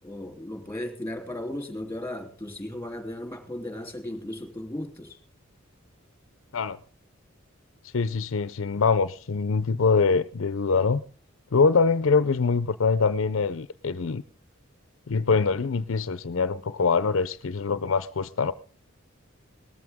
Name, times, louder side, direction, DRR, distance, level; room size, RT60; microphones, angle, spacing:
voice 1, 0.0-5.2, left 1 dB, 10° left, 3.1 m, -36 dB
voice 2, 7.9-11.0 11.5-14.2 15.1-18.5, left 4 dB, 75° left, 0.6 m, -24 dB
19.0 x 14.0 x 3.6 m
head